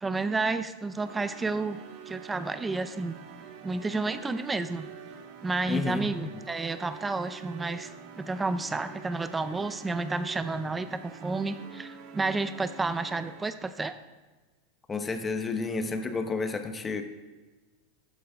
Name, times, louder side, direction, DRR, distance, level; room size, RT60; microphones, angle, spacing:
voice 1, 0.0-1.8 2.1-3.2 3.6-4.9 5.4-7.9 8.2-13.9, right 3 dB, 10° right, 11 dB, 0.5 m, -31 dB
sound 1, 1.0-13.6, right 7 dB, 50° right, 1.3 m, -47 dB
voice 2, 5.7-6.1 14.9-17.0, left 4 dB, 15° left, 7 dB, 0.8 m, -30 dB
13.5 x 9.3 x 3.5 m, 1.3 s
supercardioid pair, 150°, 0 cm